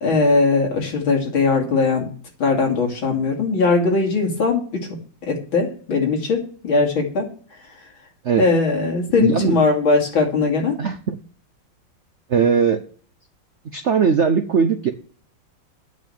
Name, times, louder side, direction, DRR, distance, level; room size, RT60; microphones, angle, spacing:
voice 1, 0.0-2.1 2.4-4.9 5.3-7.3 8.4-10.8, left 4 dB, 85° left, 0 dB, 3.4 m, -19 dB
voice 2, 9.1-9.6 10.8-11.2 12.3-12.8 13.7-14.9, right 6 dB, 65° right, 8 dB, 0.7 m, -19 dB
8.8 x 6.3 x 7.0 m, 0.43 s
omnidirectional pair, 2.2 m